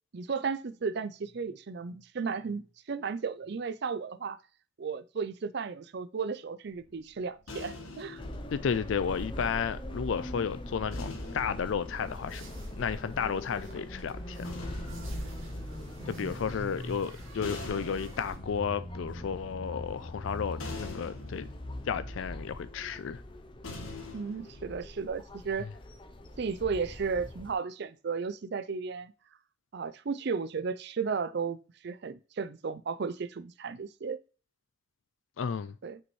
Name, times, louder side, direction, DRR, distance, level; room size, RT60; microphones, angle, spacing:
voice 1, 0.1-4.4 4.8-8.2 16.0-16.4 24.1-25.7 26.4-29.1 29.7-31.6 31.8-34.2 35.8-36.0, right 5 dB, 55° right, 0.4 m, -34 dB
sound 1, 6.7-10.0 10.9-13.2 14.1-25.2, left 3 dB, 85° left, 1.4 m, -46 dB
sound 2, 8.2-27.5, left 1 dB, 25° left, 0.6 m, -41 dB
voice 2, 8.5-12.5 12.8-14.7 16.1-21.5 21.8-23.2 35.4-35.7, left 6 dB, 65° left, 0.4 m, -33 dB
sound 3, 11.9-18.4, right 3 dB, 80° right, 2.0 m, -53 dB
6.4 x 5.1 x 3.2 m
head